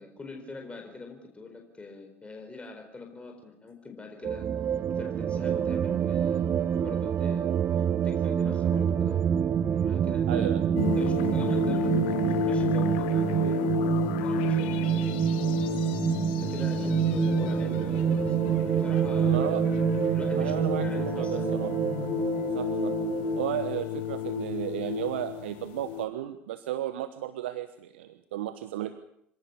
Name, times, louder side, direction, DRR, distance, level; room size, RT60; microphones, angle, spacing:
voice 1, 0.0-4.5 4.9-6.5 6.7-7.5 7.8-9.2 9.7-10.6 11.0-13.8 14.2-15.1 15.4-15.8 16.4-19.4 20.1-21.8, left 3 dB, 20° left, 3 dB, 4.4 m, -44 dB
sound 1, 4.2-23.5, right 9 dB, 40° right, 1.1 m, -27 dB
voice 2, 10.3-10.6 19.2-19.6 20.3-21.7 22.5-23.0 23.4-28.9, right 13 dB, 75° right, 11 dB, 1.1 m, -34 dB
sound 2, 10.8-26.1, left 12 dB, 70° left, 1.8 m, -32 dB
26.5 x 17.5 x 7.2 m, 0.71 s
hypercardioid pair, 70°, 6 cm